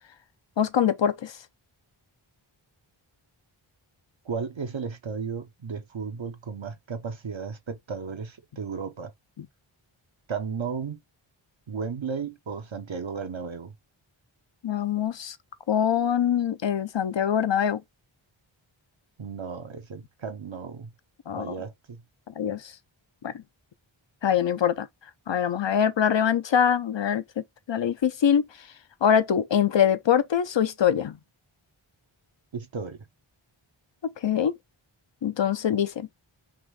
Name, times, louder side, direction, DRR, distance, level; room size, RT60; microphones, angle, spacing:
voice 1, 0.6-1.3 9.4-9.5 14.6-15.4 15.7-17.8 21.3-21.5 22.3-22.7 23.2-23.3 24.2-24.9 25.3-28.5 29.0-31.2 34.0-34.6 35.2-36.1, left 8 dB, 60° left, 0.7 m, -24 dB
voice 2, 4.2-9.1 10.3-11.0 11.7-13.7 19.2-20.9 21.4-22.0 32.5-33.0, right 5 dB, 65° right, 0.9 m, -34 dB
3.7 x 2.6 x 4.7 m
wide cardioid pair, 45°, 50 cm